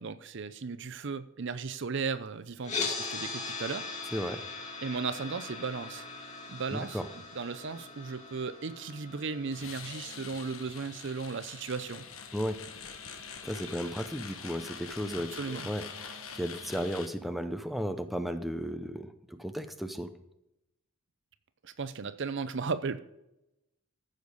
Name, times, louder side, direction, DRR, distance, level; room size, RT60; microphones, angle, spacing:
voice 1, 0.0-3.9 4.8-6.1 6.5-7.0 7.3-12.0 15.3-15.7 21.6-23.0, right 5 dB, 55° right, 14 dB, 0.6 m, -36 dB
sound 1, 2.6-12.7, left 4 dB, 30° left, 2.4 m, -41 dB
voice 2, 4.1-4.4 6.7-7.1 12.3-12.6 13.4-20.1, equal, ahead, 8 dB, 0.6 m, -35 dB
sound 2, 9.5-17.1, left 6 dB, 70° left, 1.3 m, -44 dB
14.5 x 6.6 x 5.3 m, 0.88 s
head